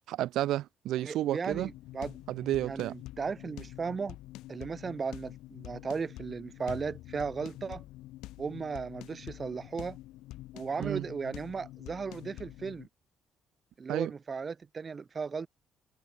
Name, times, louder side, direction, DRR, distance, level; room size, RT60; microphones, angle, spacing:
voice 1, 0.1-1.7 2.3-2.9 10.8-11.1 13.9-14.1, right 14 dB, 80° right, 1.6 m, -31 dB
voice 2, 1.0-2.2 2.6-4.2 4.5-7.8 8.4-10.0 10.5-12.9 13.8-15.5, right 5 dB, 35° right, 3.7 m, -36 dB
sound 1, 1.5-12.9, left 17 dB, 90° left, 2.8 m, -46 dB
cardioid pair, 110°, 0 cm